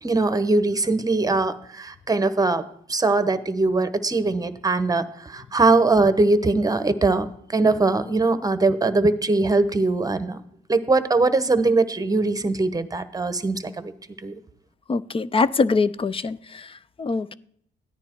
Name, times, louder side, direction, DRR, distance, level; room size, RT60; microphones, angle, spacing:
voice 1, 0.0-10.4 10.7-13.9 14.2-14.3, right 3 dB, 20° right, 1.0 m, -21 dB
voice 2, 14.9-16.7 17.0-17.3, left 4 dB, 25° left, 0.5 m, -23 dB
14.0 x 9.8 x 4.5 m
cardioid pair, 90°, 20 cm